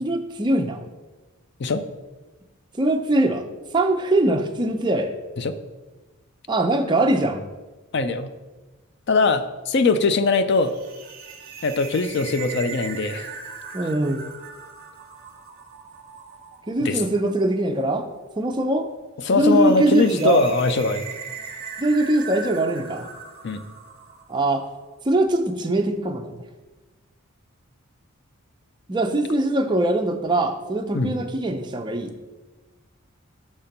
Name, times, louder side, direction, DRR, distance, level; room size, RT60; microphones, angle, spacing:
voice 1, 0.0-0.8 2.8-3.4 3.7-5.1 6.5-7.5 13.7-14.3 16.7-18.1 18.4-18.9 19.3-20.4 21.8-23.1 24.3-24.6 25.0-26.3 28.9-32.1, right 2 dB, 20° right, 5 dB, 0.4 m, -22 dB
voice 2, 7.9-8.3 9.1-10.7 11.6-13.3 16.8-17.0 19.2-21.0 23.4-23.6 30.9-31.1, left 3 dB, 50° left, 11 dB, 0.4 m, -21 dB
sound 1, 10.5-24.9, right 5 dB, 45° right, 1.1 m, -40 dB
5.9 x 4.3 x 5.1 m, 1.2 s
head